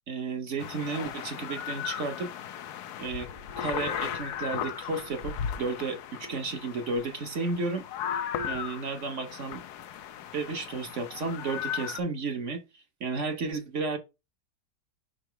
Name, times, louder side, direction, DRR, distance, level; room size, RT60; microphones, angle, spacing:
voice 1, 0.1-2.3 3.0-3.3 3.6-7.8 8.5-9.6 10.3-14.0, right 4 dB, 50° right, 1.2 m, -33 dB
sound 1, 0.6-12.0, left 9 dB, 70° left, 1.2 m, -36 dB
5.7 x 3.9 x 4.4 m
omnidirectional pair, 1.8 m